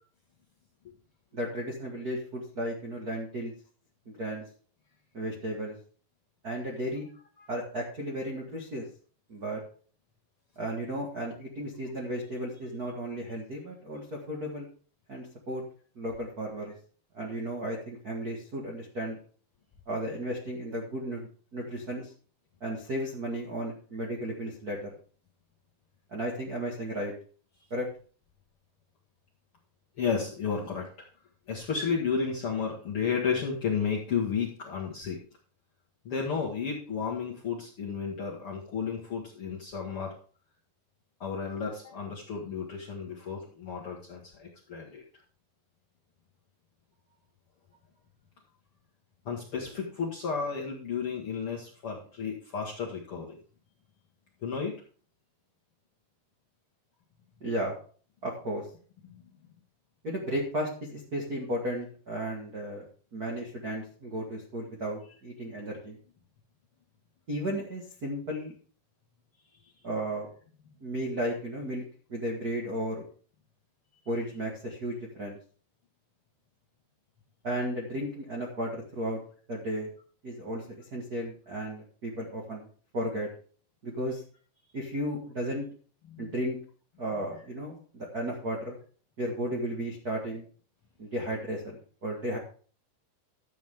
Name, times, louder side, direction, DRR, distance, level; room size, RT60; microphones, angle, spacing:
voice 1, 1.3-3.5 4.0-4.4 5.1-5.8 6.4-7.1 7.5-8.8 9.3-9.6 10.5-14.7 15.1-15.6 15.9-16.7 17.1-19.2 19.9-22.1 22.6-24.9 26.1-27.1 27.7-27.9 57.4-57.8 58.2-58.6 60.0-62.9 63.1-66.0 67.3-68.5 69.8-70.3 70.8-73.0 74.1-75.4 77.4-79.2 79.5-79.9 80.2-82.7 82.9-83.3 83.8-84.2 84.7-85.7 86.2-86.6 87.0-88.8 89.2-90.5 91.0-92.4, equal, 65° right, -1 dB, 0.9 m, -34 dB
voice 2, 30.0-30.9 31.5-35.2 36.0-40.1 41.2-45.0 49.2-53.4 54.4-54.7 59.0-59.2 86.1-86.3, left 6 dB, 60° left, -4 dB, 1.5 m, -32 dB
12.5 x 8.5 x 3.6 m, 0.42 s
omnidirectional pair, 4.9 m